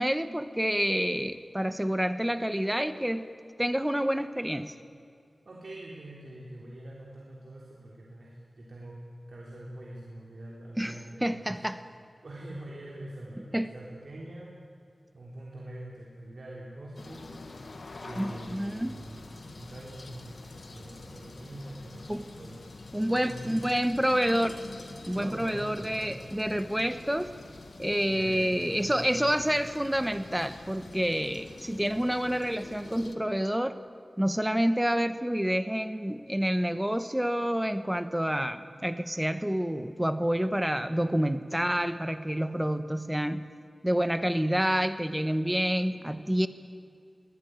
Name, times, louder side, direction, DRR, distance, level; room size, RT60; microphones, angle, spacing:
voice 1, 0.0-3.3 3.6-4.7 10.8-11.8 13.5-13.7 18.2-19.0 22.1-22.3 22.9-24.6 25.1-27.3 27.8-33.8 34.2-43.5 43.8-46.5, equal, 10° right, 11 dB, 1.1 m, -28 dB
voice 2, 5.5-9.0 9.3-11.9 12.2-14.5 15.1-17.3 18.0-22.6 23.1-23.8 25.1-26.3 28.1-29.4, right 1 dB, 70° right, -4 dB, 3.7 m, -44 dB
sound 1, 17.0-33.2, left 3 dB, 75° left, 1.7 m, -46 dB
23.0 x 17.5 x 9.4 m, 2.4 s
wide cardioid pair, 65°, 0 cm